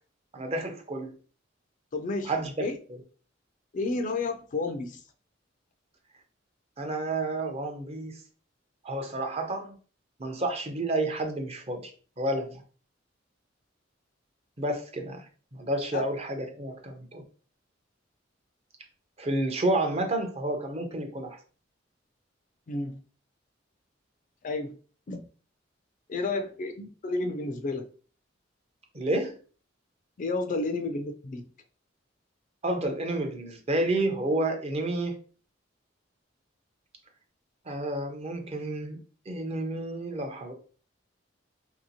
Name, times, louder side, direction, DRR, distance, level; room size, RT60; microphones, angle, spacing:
voice 1, 0.3-1.1 2.2-2.7 6.8-8.2 8.8-9.7 10.2-11.9 12.2-12.6 14.6-15.3 15.5-17.2 19.2-21.4 28.9-29.4 32.6-35.2 37.7-39.0 39.3-40.5, right 2 dB, 35° right, 0.6 m, -30 dB
voice 2, 1.9-2.3 2.6-2.8 3.7-5.0 15.9-16.0 22.7-23.0 24.4-24.8 25.1-25.2 26.1-27.9 30.2-31.5, left 3 dB, 45° left, 0.4 m, -31 dB
2.8 x 2.8 x 2.7 m
head